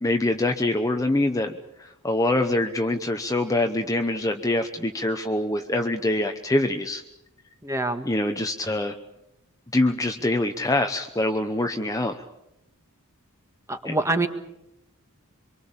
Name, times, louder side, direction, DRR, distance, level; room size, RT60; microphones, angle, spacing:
voice 1, 0.0-7.0 8.0-8.9 9.7-12.2 13.8-13.9, left 1 dB, 15° left, 5 dB, 0.9 m, -24 dB
voice 2, 7.6-8.1 13.7-14.3, right 2 dB, 15° right, 7 dB, 1.7 m, -25 dB
25.5 x 23.5 x 7.2 m, 0.86 s
head